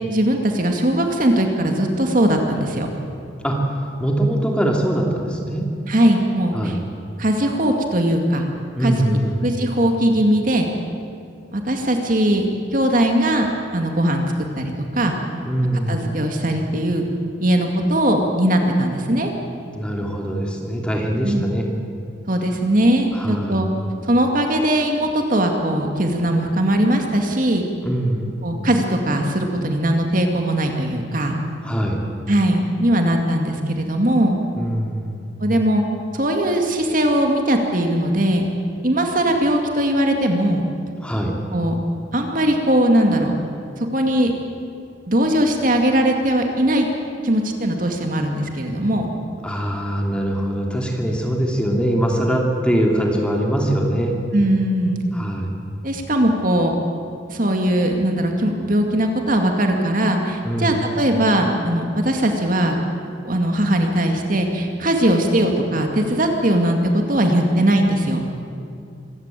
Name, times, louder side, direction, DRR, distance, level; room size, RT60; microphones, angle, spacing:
voice 1, 0.1-2.9 5.9-6.8 7.2-8.5 8.8-10.7 11.5-12.4 12.7-15.2 15.9-17.0 17.4-19.3 21.2-21.5 22.3-23.7 24.0-27.6 28.4-31.4 32.3-34.4 35.4-35.8 36.1-38.5 38.8-40.7 41.5-41.8 42.1-43.3 43.8-44.3 45.1-46.9 47.2-49.1 54.3-55.0 55.8-56.8 57.3-62.8 63.2-68.2, right 1 dB, 45° right, 3 dB, 2.3 m, -19 dB
voice 2, 4.0-5.6 6.5-6.8 8.7-9.4 15.4-16.1 19.7-21.7 23.1-23.6 27.8-28.3 31.6-32.0 34.6-35.3 41.0-41.3 49.4-54.2 55.1-55.6 60.4-60.7, right 1 dB, 5° left, 0 dB, 2.9 m, -22 dB
25.0 x 15.5 x 9.2 m, 2.4 s
head